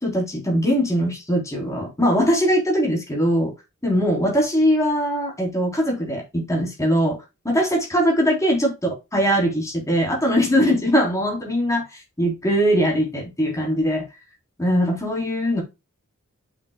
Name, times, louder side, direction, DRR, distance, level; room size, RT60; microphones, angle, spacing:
voice 1, 0.0-3.5 3.8-8.7 9.1-11.9 12.2-14.1 14.6-15.6, equal, 15° left, 3.6 m, -21 dB
8.2 x 6.9 x 2.3 m
head